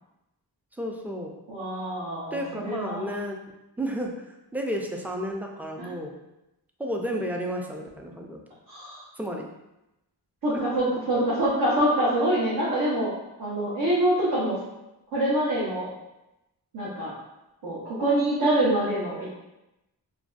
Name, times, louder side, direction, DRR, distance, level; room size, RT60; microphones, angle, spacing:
voice 1, 0.8-1.3 2.3-3.4 3.8-4.1 4.5-6.1 6.8-8.4 9.2-9.4 10.5-10.7 11.1-11.2, equal, 5° right, 1 dB, 0.3 m, -32 dB
voice 2, 1.5-3.1 5.8-5.9 8.7-9.0 10.4-13.1 13.4-14.6 15.1-15.9 16.7-17.1 17.6-19.3, right 1 dB, 65° right, -8 dB, 0.8 m, -25 dB
2.5 x 2.2 x 2.4 m, 0.93 s
cardioid pair, 45°, 41 cm